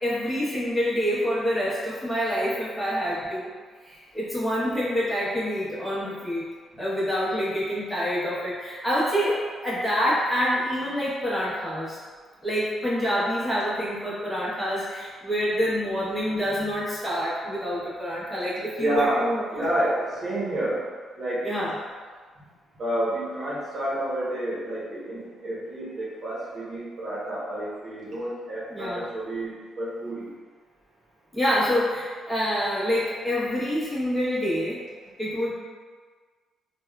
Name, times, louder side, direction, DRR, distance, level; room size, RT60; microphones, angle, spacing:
voice 1, 0.0-3.5 3.9-6.4 6.8-12.0 12.4-19.4 21.4-21.7 28.7-29.1 31.3-34.8 35.2-35.5, equal, 10° left, -9 dB, 1.1 m, -27 dB
voice 2, 18.8-20.9 21.2-21.5 22.8-30.3, right 1 dB, 55° right, -7 dB, 0.9 m, -29 dB
3.4 x 2.3 x 2.3 m, 1.5 s
cardioid pair, 90°, 0 cm